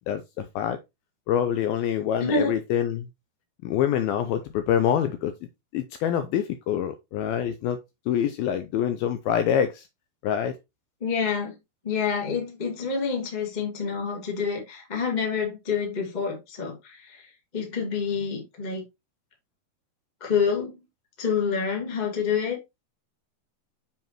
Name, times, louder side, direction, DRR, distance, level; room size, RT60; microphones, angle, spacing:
voice 1, 0.1-0.8 1.3-3.1 3.6-5.3 5.7-7.8 8.1-9.9 10.2-10.6, left 9 dB, 90° left, 2.1 m, -25 dB
voice 2, 2.2-2.5 11.0-11.6 11.8-18.8 20.2-20.8 21.2-22.6, left 5 dB, 45° left, 0.5 m, -27 dB
6.9 x 5.6 x 3.0 m
omnidirectional pair, 4.8 m